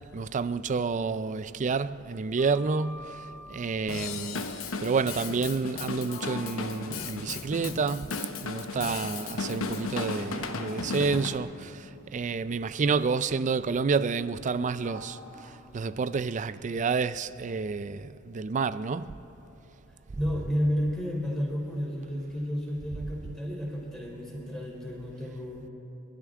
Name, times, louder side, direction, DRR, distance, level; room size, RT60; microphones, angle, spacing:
voice 1, 0.1-4.4 4.8-19.1, right 4 dB, 35° right, 0.4 m, -29 dB
Sliding door, 2.1-3.7 5.6-5.8 6.0-8.5 9.1-16.6, left 1 dB, 30° left, 1.6 m, -50 dB
Drum kit / Drum, 3.9-11.4, left 4 dB, 75° left, 0.9 m, -35 dB
voice 2, 20.2-25.7, equal, 5° left, 3.5 m, -31 dB
28.5 x 12.5 x 3.7 m
head